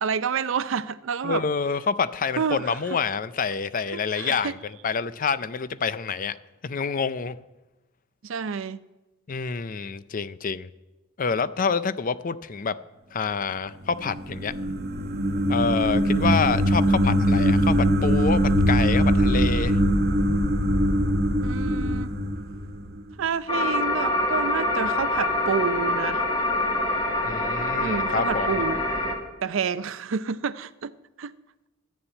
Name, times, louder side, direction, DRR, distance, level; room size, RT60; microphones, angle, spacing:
voice 1, 0.0-1.4 2.4-2.7 3.9-4.5 8.2-8.8 21.4-22.1 23.2-26.2 27.8-28.8 29.4-30.9 31.2-31.3, right 6 dB, 80° right, 0.5 m, -29 dB
voice 2, 1.2-6.4 6.6-7.4 9.3-10.7 11.2-12.8 13.1-14.5 15.5-19.8 27.2-28.6, left 5 dB, 45° left, 0.5 m, -27 dB
sound 1, 13.9-23.1, equal, 50° right, 1.0 m, -22 dB
sound 2, 23.5-29.1, left 2 dB, 25° left, 1.8 m, -25 dB
13.0 x 7.0 x 8.8 m
head